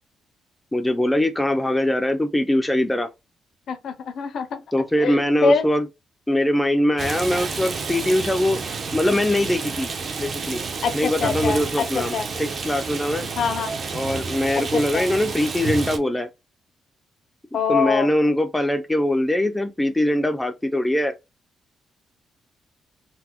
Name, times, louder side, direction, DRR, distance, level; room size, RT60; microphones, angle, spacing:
voice 1, 0.7-3.1 4.7-5.9 6.3-8.6 8.9-9.9 10.2-10.6 10.9-12.1 12.4-13.3 13.9-16.3 17.7-21.1, left 1 dB, 5° left, 0.4 m, -22 dB
voice 2, 3.7-4.6 5.0-5.6 10.8-12.2 13.4-13.7 14.7-15.0 17.5-18.1, left 5 dB, 55° left, 0.5 m, -24 dB
Rain, 7.0-16.0, right 4 dB, 40° right, 0.6 m, -30 dB
3.9 x 2.0 x 2.9 m
cardioid pair, 160°, 0 cm